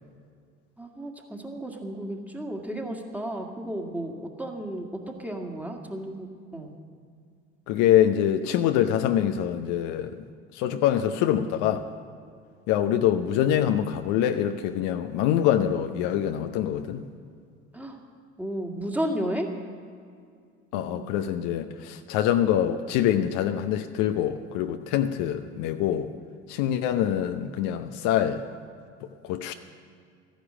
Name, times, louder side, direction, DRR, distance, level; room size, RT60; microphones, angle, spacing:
voice 1, 0.8-6.7 17.7-18.0 18.4-19.5 20.7-21.2, right 1 dB, 5° right, 2 dB, 1.9 m, -33 dB
voice 2, 7.7-10.2 10.5-11.9 12.7-17.0 20.7-26.1 26.5-28.4 29.2-29.5, left 10 dB, 60° left, 8 dB, 0.7 m, -25 dB
14.0 x 10.5 x 6.2 m, 2.2 s
hypercardioid pair, 70°, 34 cm